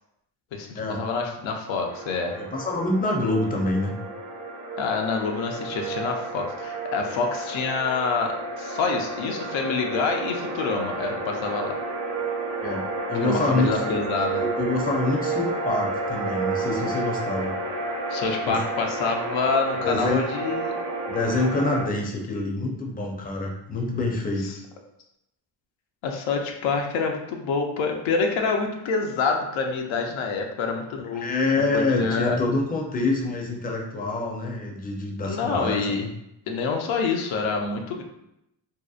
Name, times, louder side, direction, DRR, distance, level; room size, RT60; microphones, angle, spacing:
voice 1, 0.5-2.3 4.8-11.8 13.2-14.4 18.1-20.7 26.0-32.4 35.2-36.0 36.5-38.0, left 4 dB, 80° left, 2 dB, 0.5 m, -27 dB
sound 1, 1.9-21.8, right 2 dB, 45° right, 0.8 m, -31 dB
voice 2, 2.3-3.9 12.6-14.0 14.4-17.5 18.5-18.6 19.8-20.2 21.1-24.5 31.1-36.1, left 2 dB, 20° left, 0 dB, 0.5 m, -26 dB
2.7 x 2.0 x 2.3 m, 0.84 s
cardioid pair, 75°, 45 cm